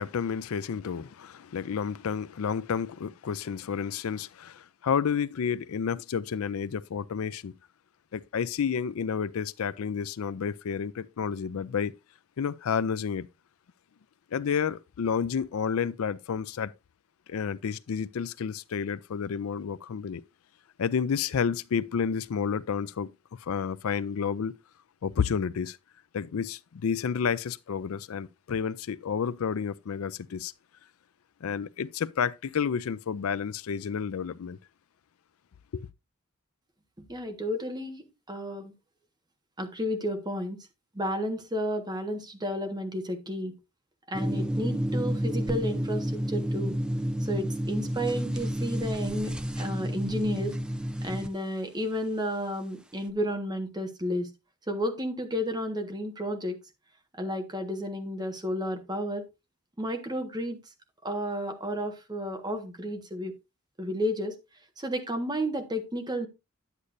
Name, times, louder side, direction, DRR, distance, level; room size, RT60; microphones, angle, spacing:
voice 1, 0.0-7.5 8.1-11.9 12.4-13.3 14.3-16.7 17.3-20.2 20.8-23.1 23.4-24.5 25.0-25.8 26.1-30.5 31.4-34.6 35.7-35.9, left 6 dB, 85° left, 0.4 m, -30 dB
voice 2, 37.1-38.7 39.6-40.6 40.9-43.6 44.1-46.8 47.2-50.6 51.0-54.3 54.7-56.6 57.1-59.3 59.8-60.6 61.0-63.3 63.8-64.4 64.8-66.3, equal, 20° right, 1.4 m, -32 dB
sound 1, 44.1-51.3, equal, 5° right, 0.5 m, -30 dB
9.8 x 8.2 x 2.6 m
head